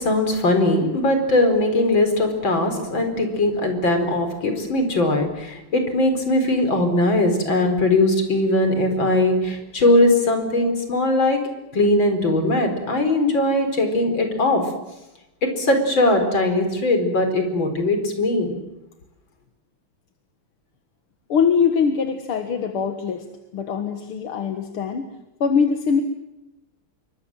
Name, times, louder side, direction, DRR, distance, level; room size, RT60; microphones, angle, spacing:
voice 1, 0.0-11.4 11.7-14.6 15.4-18.6, left 2 dB, 60° left, 6 dB, 5.1 m, -20 dB
voice 2, 21.3-23.3 23.5-25.1 25.4-26.0, left 6 dB, 85° left, 6 dB, 2.4 m, -22 dB
27.5 x 24.0 x 7.7 m, 0.93 s
omnidirectional pair, 2.3 m